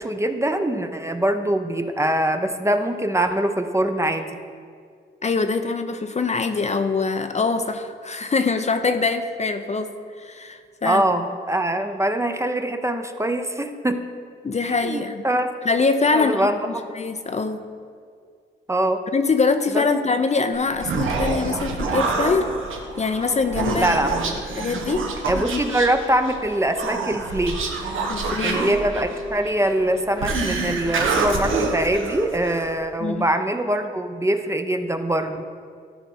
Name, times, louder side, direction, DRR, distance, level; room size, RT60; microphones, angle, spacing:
voice 1, 0.0-4.4 10.8-14.1 14.7-15.5 16.1-16.8 18.7-19.0 19.7-19.8 23.8-24.4 25.3-27.6 28.4-35.4, right 1 dB, 15° right, 7 dB, 0.7 m, -23 dB
voice 2, 5.2-11.0 14.4-15.2 15.6-16.5 16.9-17.6 19.1-22.5 23.0-23.9 24.6-25.1 25.5-25.6 28.1-28.6 33.0-33.2, left 4 dB, 35° left, 8 dB, 0.6 m, -23 dB
Human voice, 20.5-32.8, right 3 dB, 75° right, 1.1 m, -27 dB
13.0 x 4.4 x 4.2 m, 2.1 s
supercardioid pair, 55°, 21 cm